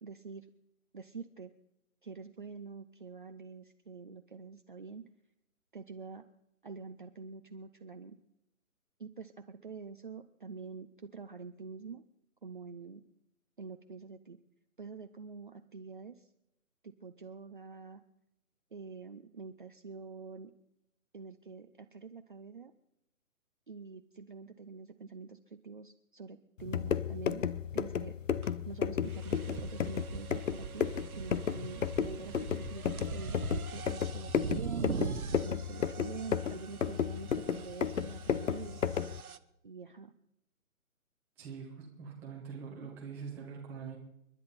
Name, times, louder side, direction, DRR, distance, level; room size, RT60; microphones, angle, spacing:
voice 1, 0.0-0.5 0.9-1.5 2.0-5.1 5.7-6.2 6.6-8.2 9.0-12.0 12.4-13.0 13.6-14.4 14.8-16.3 16.8-18.0 18.7-20.5 21.1-22.7 23.7-28.2 28.7-38.8 39.6-40.1, right 5 dB, 35° right, 7 dB, 0.6 m, -46 dB
sound 1, 26.6-39.2, left 7 dB, 60° left, 0.8 m, -33 dB
sound 2, 28.4-28.5 29.1-39.4, right 6 dB, 85° right, 1.1 m, -42 dB
voice 2, 41.4-44.0, right 6 dB, 5° right, -3 dB, 1.0 m, -44 dB
30.0 x 11.0 x 4.2 m, 0.83 s
hypercardioid pair, 165°, 42 cm